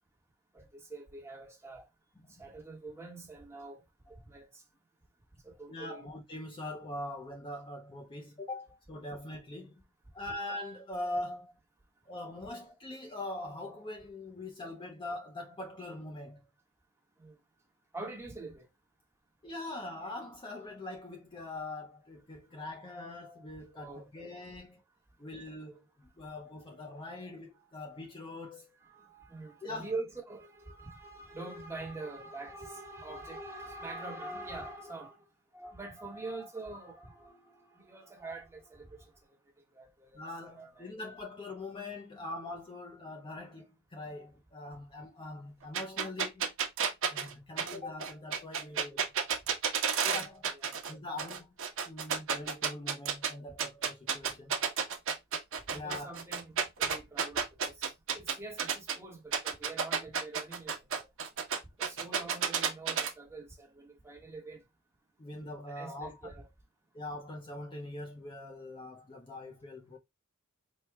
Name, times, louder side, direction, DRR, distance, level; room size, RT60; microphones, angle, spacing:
voice 1, 0.5-1.8 2.3-3.8 4.1-4.6 5.4-6.1 17.2-17.4 17.9-18.7 23.7-24.1 28.8-35.3 35.5-39.1 39.7-41.0 50.5-50.8 55.7-61.1 61.8-64.6 65.7-66.5, right 3 dB, 10° right, 1.0 m, -45 dB
voice 2, 5.7-9.8 10.1-11.5 12.1-16.5 19.4-24.8 25.2-28.7 29.6-29.9 40.1-46.5 47.1-49.0 50.0-50.5 50.9-51.5 51.8-54.6 55.7-56.2 65.2-66.3 66.9-70.0, left 2 dB, 20° left, 0.5 m, -42 dB
sound 1, 45.7-50.9 51.2-53.3 53.6-58.9 59.3-63.1, right 6 dB, 65° right, 0.8 m, -31 dB
4.5 x 2.2 x 3.3 m
head